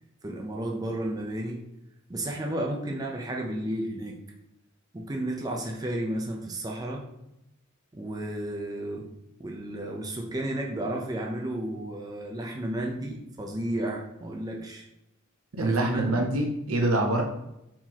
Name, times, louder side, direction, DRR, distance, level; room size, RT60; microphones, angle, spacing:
voice 1, 0.2-1.6 2.1-4.2 4.9-7.0 7.9-9.1 9.4-14.8 15.6-16.2, right 1 dB, 20° right, 0 dB, 0.5 m, -32 dB
voice 2, 15.6-17.2, right 2 dB, 90° right, 1 dB, 0.8 m, -25 dB
4.5 x 3.8 x 2.9 m, 0.87 s
head